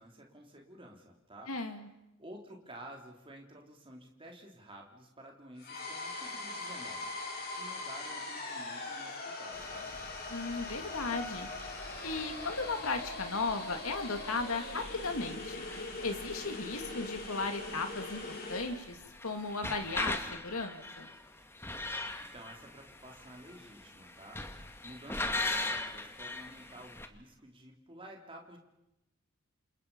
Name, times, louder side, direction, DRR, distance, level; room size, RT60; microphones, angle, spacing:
voice 1, 0.0-1.5 2.2-7.1 7.5-10.0 22.3-24.5 24.8-28.6, right 1 dB, 25° right, 1 dB, 3.2 m, -51 dB
voice 2, 1.5-1.9 10.3-11.5 12.0-15.6 16.0-18.2 18.5-19.0 19.2-21.1, left 3 dB, 80° left, 6 dB, 2.4 m, -36 dB
sound 1, 5.6-18.8, left 3 dB, 45° left, 6.7 m, -42 dB
sound 2, 9.5-27.1, left 2 dB, 10° left, 1.5 m, -42 dB
28.5 x 28.0 x 5.5 m, 0.91 s
head